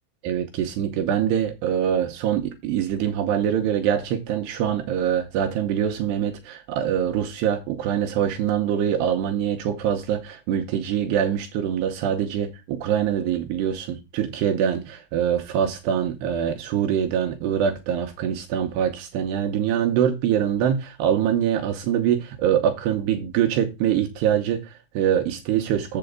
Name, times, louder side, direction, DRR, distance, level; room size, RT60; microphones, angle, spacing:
voice 1, 0.2-26.0, right 9 dB, 75° right, 2.8 m, -24 dB
7.9 x 7.6 x 3.6 m
omnidirectional pair, 5.3 m